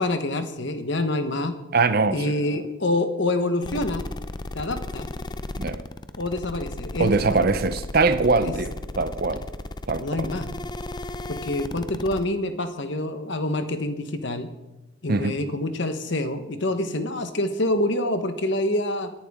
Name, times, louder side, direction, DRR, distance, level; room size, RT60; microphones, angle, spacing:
voice 1, 0.0-1.6 2.1-4.0 4.5-5.1 6.2-7.1 8.4-8.5 10.0-10.5 11.3-14.5 15.0-19.1, left 1 dB, 55° left, 1.1 m, -26 dB
voice 2, 1.7-2.6 5.6-5.8 7.0-9.5 9.9-10.3 15.1-15.4, right 3 dB, 45° right, 0.6 m, -23 dB
sound 1, 3.6-12.2, left 2 dB, 20° left, 0.4 m, -34 dB
18.5 x 11.0 x 3.6 m
head